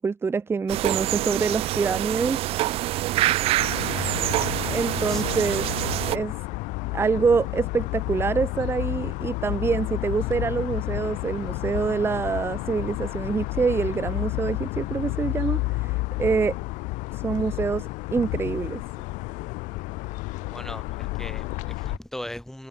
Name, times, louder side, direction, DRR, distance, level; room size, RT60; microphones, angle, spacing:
voice 1, 0.0-2.4 4.7-5.7 6.1-6.3 6.9-16.6 17.1-18.8, right 5 dB, 15° right, 0.9 m, -26 dB
sound 1, 0.7-6.2, right 16 dB, 45° right, 0.4 m, -26 dB
sound 2, 3.6-22.0, left 23 dB, 65° left, 1.2 m, -31 dB
voice 2, 20.5-22.7, left 1 dB, 5° left, 5.9 m, -38 dB
supercardioid pair, 125°, 14 cm